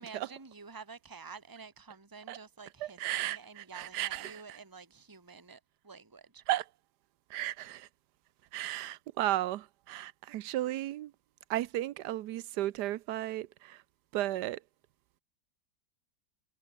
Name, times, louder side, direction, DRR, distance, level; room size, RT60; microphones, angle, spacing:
voice 1, 0.0-6.4, right 5 dB, 15° right, 1.7 m, -50 dB
voice 2, 2.8-4.4 6.5-6.6 7.3-7.9 8.5-11.1 11.5-13.8 14.1-14.6, right 14 dB, 80° right, 1.3 m, -34 dB
omnidirectional pair, 1.8 m